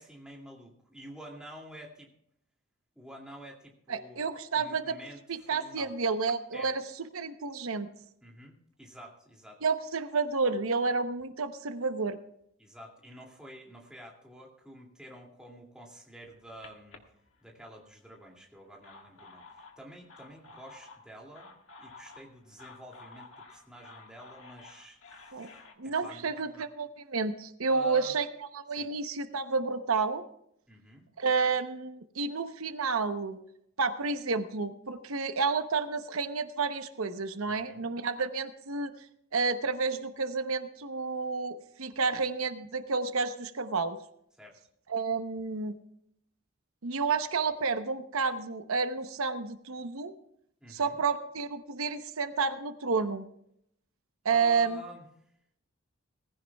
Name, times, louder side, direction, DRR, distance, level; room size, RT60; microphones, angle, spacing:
voice 1, 0.0-2.1 3.0-5.9 6.5-6.7 8.2-9.6 12.6-17.0 17.4-26.6 27.7-28.2 28.7-28.9 30.7-31.1 37.4-37.9 44.4-44.6 50.6-51.0 54.3-55.0, equal, 5° right, -2 dB, 2.4 m, -49 dB
voice 2, 3.9-5.0 5.3-6.8 7.1-7.9 9.6-12.2 25.3-25.5 25.8-28.3 28.5-30.2 31.2-33.4 33.8-38.9 39.3-44.0 44.9-45.7 46.8-50.1 50.7-53.2 54.2-54.8, right 4 dB, 80° right, 9 dB, 0.9 m, -30 dB
sound 1, 16.3-17.9 18.6-25.7, left 3 dB, 65° left, 1.7 m, -52 dB
19.0 x 16.0 x 2.3 m, 0.72 s
head